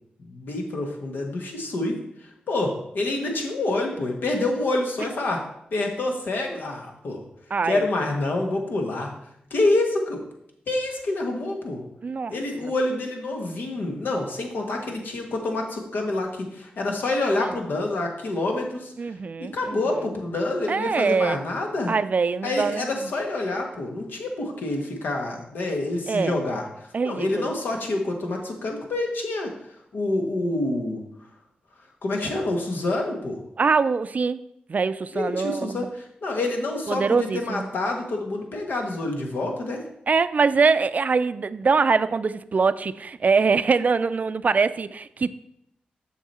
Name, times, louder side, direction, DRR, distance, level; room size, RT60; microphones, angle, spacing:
voice 1, 0.2-5.4 5.7-7.2 7.6-9.1 9.5-10.2 10.7-11.8 12.3-18.9 19.4-21.9 22.4-29.5 29.9-31.0 32.0-33.4 35.1-39.8, left 2 dB, 75° left, 2 dB, 1.4 m, -27 dB
voice 2, 7.5-7.8 12.0-12.4 12.6-12.7 17.4-17.6 19.0-19.8 20.7-21.4 21.9-22.9 26.1-26.4 26.9-27.5 33.6-34.4 34.7-35.9 36.9-37.7 40.1-45.3, right 4 dB, 50° right, 14 dB, 0.4 m, -23 dB
7.3 x 6.0 x 4.2 m, 0.76 s
cardioid pair, 55°, 3 cm